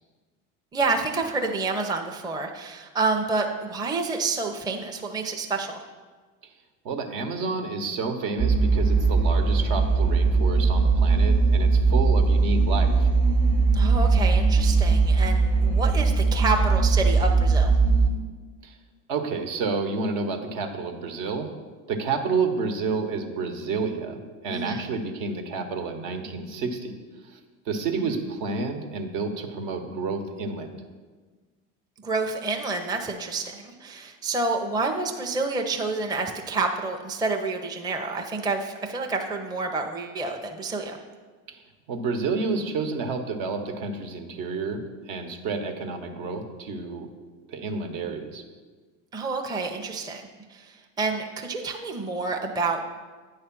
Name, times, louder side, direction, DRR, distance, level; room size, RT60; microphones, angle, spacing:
voice 1, 0.7-5.8 13.7-17.8 24.5-24.9 28.0-28.2 32.0-41.0 49.1-52.8, right 3 dB, 10° right, 3 dB, 0.5 m, -28 dB
voice 2, 6.8-13.1 18.6-18.8 19.1-21.5 21.9-27.0 27.2-27.4 27.7-30.7 41.5-41.6 41.9-47.1 47.5-48.4, right 4 dB, 65° right, 5 dB, 1.1 m, -30 dB
sound 1, 8.4-18.1, right 4 dB, 30° right, 0.9 m, -20 dB
8.9 x 3.3 x 6.0 m, 1.4 s
hypercardioid pair, 90°, 39 cm